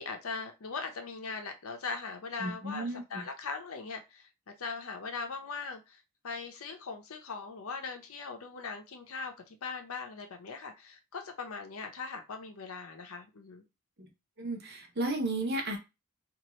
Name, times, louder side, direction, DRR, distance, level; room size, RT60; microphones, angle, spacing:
voice 1, 0.0-13.6, left 4 dB, 70° left, 0.7 m, -40 dB
voice 2, 2.4-3.2 14.4-15.8, right 2 dB, 45° right, 0.8 m, -33 dB
2.8 x 2.5 x 3.0 m
head